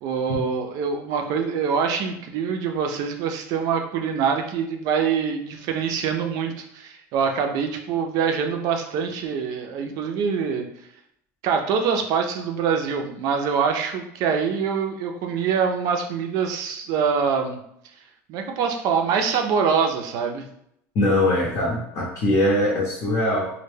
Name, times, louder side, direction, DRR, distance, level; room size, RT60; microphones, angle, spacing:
voice 1, 0.0-10.7 11.4-17.6 18.3-20.5, right 6 dB, 55° right, 4 dB, 0.4 m, -24 dB
voice 2, 20.9-23.5, left 1 dB, 45° left, -4 dB, 0.6 m, -21 dB
2.1 x 2.1 x 3.2 m, 0.73 s
supercardioid pair, 135°, 7 cm